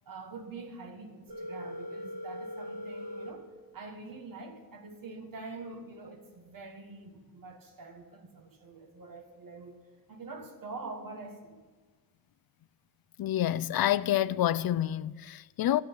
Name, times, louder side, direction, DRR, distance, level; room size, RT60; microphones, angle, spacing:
voice 1, 0.0-3.5 3.7-9.8 10.1-11.6, right 3 dB, 65° right, 1.6 m, -45 dB
Telephone, 1.3-3.3, left 1 dB, 85° right, 4.6 m, -40 dB
voice 2, 13.2-15.8, left 12 dB, 75° left, 0.5 m, -28 dB
14.0 x 6.2 x 9.8 m
wide cardioid pair, 145°, 36 cm